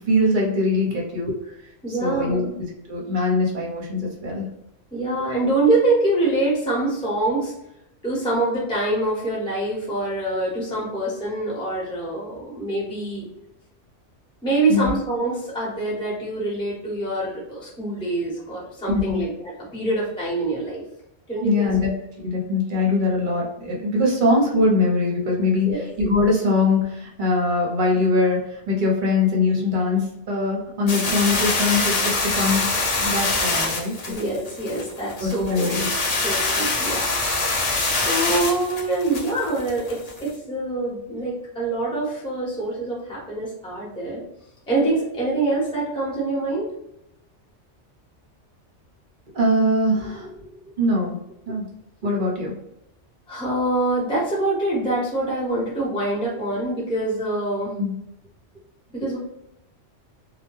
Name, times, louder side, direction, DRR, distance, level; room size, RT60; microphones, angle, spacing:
voice 1, 0.0-1.3 1.9-2.5 2.9-4.5 14.7-14.9 18.9-19.2 21.4-21.9 22.2-33.9 35.2-35.9 49.3-50.4 50.8-51.2 51.5-51.7 52.0-52.5 57.8-57.9, left 2 dB, 50° right, -2 dB, 0.8 m, -22 dB
voice 2, 1.8-2.5 4.9-7.5 8.0-13.3 14.4-20.8 21.3-21.7 25.6-25.8 34.1-35.8 36.2-37.1 37.9-44.2 44.7-46.7 53.3-57.7 58.9-59.2, right 2 dB, 5° left, -6 dB, 0.8 m, -25 dB
sound 1, 30.9-40.3, left 2 dB, 45° left, 0.5 m, -24 dB
2.2 x 2.1 x 3.0 m, 0.82 s
omnidirectional pair, 1.2 m